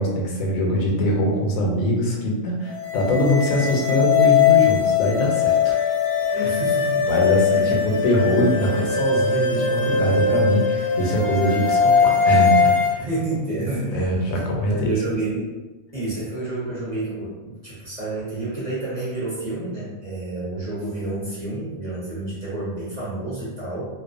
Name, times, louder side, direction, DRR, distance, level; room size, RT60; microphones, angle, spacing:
voice 1, 0.0-5.9 6.3-6.6 7.1-13.1 13.9-14.9, left 1 dB, 90° left, -1 dB, 1.0 m, -23 dB
sound 1, 2.7-12.9, left 6 dB, 60° left, 0.6 m, -20 dB
voice 2, 6.4-7.1 7.5-7.8 13.0-14.4 14.7-15.5 15.9-23.9, right 2 dB, 40° right, -9 dB, 0.7 m, -29 dB
2.4 x 2.2 x 2.4 m, 1.2 s
omnidirectional pair, 1.4 m